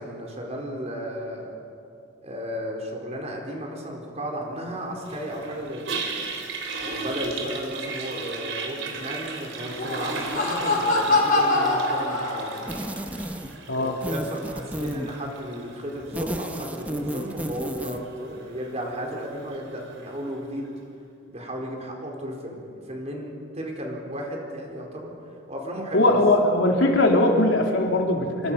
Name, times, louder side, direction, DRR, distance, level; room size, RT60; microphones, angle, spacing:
voice 1, 0.0-1.5 2.2-6.1 6.8-12.7 13.7-20.7 21.3-25.1 25.5-26.2, equal, 35° right, 0 dB, 4.6 m, -34 dB
Toilet flush, 5.1-20.3, right 4 dB, 90° right, 3.5 m, -37 dB
Laughter, 9.6-12.8, left 2 dB, 50° left, 5.4 m, -24 dB
sound 1, 12.7-13.7 14.0-15.1 16.0-18.1, equal, 10° right, 1.2 m, -32 dB
voice 2, 13.7-14.0 25.9-28.5, left 1 dB, 85° left, 1 dB, 3.4 m, -20 dB
28.0 x 24.5 x 5.8 m, 2.5 s
head